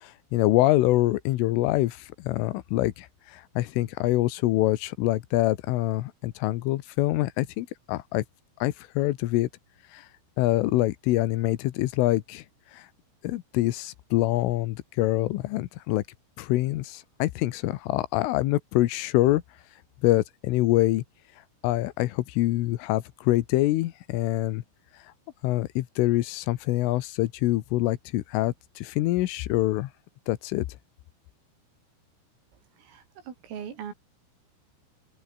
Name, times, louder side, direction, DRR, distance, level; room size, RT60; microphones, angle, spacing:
voice 1, 0.0-3.1 3.6-8.2 8.6-9.5 9.9-10.0 10.4-12.4 12.7-12.8 13.2-16.0 16.4-19.4 20.0-21.0 21.6-24.6 25.4-29.9 30.3-30.7, left 17 dB, 75° left, 3.6 m, -25 dB
voice 2, 32.5-33.9, right 8 dB, 75° right, 6.6 m, -41 dB
open air
omnidirectional pair, 6.0 m